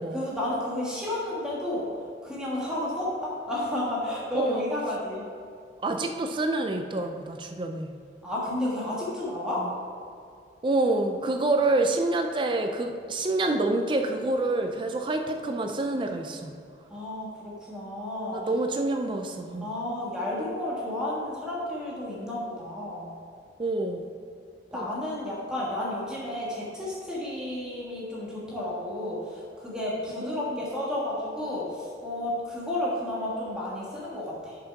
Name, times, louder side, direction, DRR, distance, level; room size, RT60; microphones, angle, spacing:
voice 1, 0.1-1.9 2.2-5.2 8.2-9.6 16.9-18.4 19.6-23.1 24.7-34.6, left 1 dB, 5° right, -7 dB, 1.5 m, -32 dB
voice 2, 5.8-7.9 9.6-9.7 10.6-16.6 18.3-19.7 23.6-24.0 24.7-24.9 30.2-30.6, right 2 dB, 30° right, 5 dB, 0.4 m, -27 dB
6.7 x 5.6 x 5.8 m, 2.4 s
head